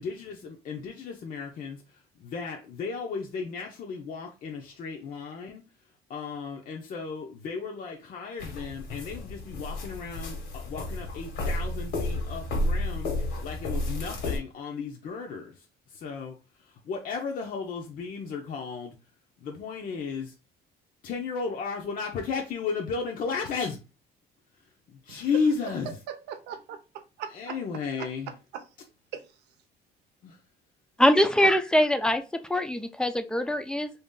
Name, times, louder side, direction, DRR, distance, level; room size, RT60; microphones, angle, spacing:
voice 1, 0.0-5.6 6.1-13.1 13.4-15.6 15.9-19.0 19.4-20.3 21.0-23.8 24.9-25.9 27.3-28.3 30.2-30.4, left 5 dB, 55° left, 0.6 m, -34 dB
sound 1, 8.4-14.4, left 2 dB, 80° left, 1.4 m, -32 dB
voice 2, 26.1-27.6 28.0-28.1 28.5-28.7 29.1-29.4, right 8 dB, 85° right, 0.7 m, -40 dB
voice 3, 31.0-33.9, equal, 5° left, 0.4 m, -23 dB
3.0 x 2.8 x 3.7 m
cardioid pair, 110°, 17 cm